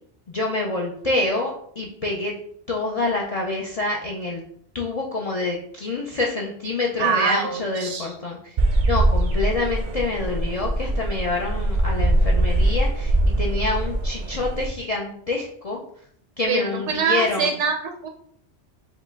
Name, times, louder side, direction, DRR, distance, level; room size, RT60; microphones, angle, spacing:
voice 1, 0.3-2.3 2.7-4.4 4.7-8.6 8.9-15.8 16.4-17.6, left 2 dB, 50° left, -2 dB, 0.4 m, -27 dB
voice 2, 7.0-8.1 16.5-18.1, right 5 dB, 85° right, 4 dB, 0.9 m, -24 dB
sound 1, 8.6-14.7, right 1 dB, 55° right, 0.5 m, -22 dB
4.9 x 2.2 x 3.4 m, 0.63 s
omnidirectional pair, 1.2 m